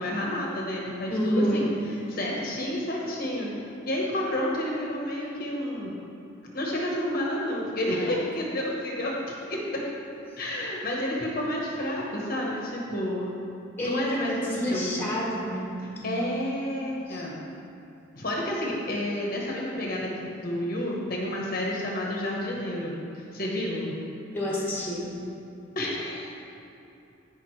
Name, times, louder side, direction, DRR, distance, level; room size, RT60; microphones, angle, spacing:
voice 1, 0.0-3.5 3.9-5.9 6.5-9.8 10.4-13.3 13.8-15.0 16.0-17.3 18.2-23.9 25.7-26.4, left 1 dB, 50° left, -3 dB, 1.1 m, -30 dB
voice 2, 1.1-1.7 13.8-15.8 17.1-17.2 24.3-25.1, equal, 10° left, -4 dB, 1.6 m, -28 dB
16.0 x 5.3 x 3.2 m, 2.8 s
head